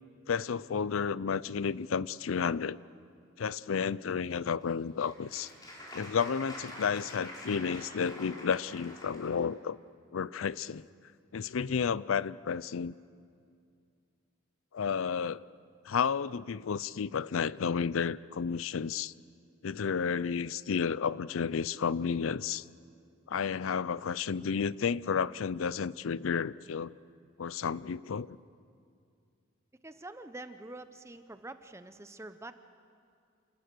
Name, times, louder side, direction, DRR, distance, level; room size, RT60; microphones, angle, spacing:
voice 1, 0.3-2.8 3.4-5.5 5.9-9.8 10.1-10.9 11.3-12.9 14.7-15.4 15.9-19.1 19.6-22.6 23.3-26.9 27.4-28.4, left 6 dB, 80° left, 0.5 m, -32 dB
Applause, 4.6-9.4, left 1 dB, 20° left, 3.3 m, -46 dB
voice 2, 29.8-32.5, right 2 dB, 15° right, 0.6 m, -46 dB
28.0 x 18.0 x 6.7 m
head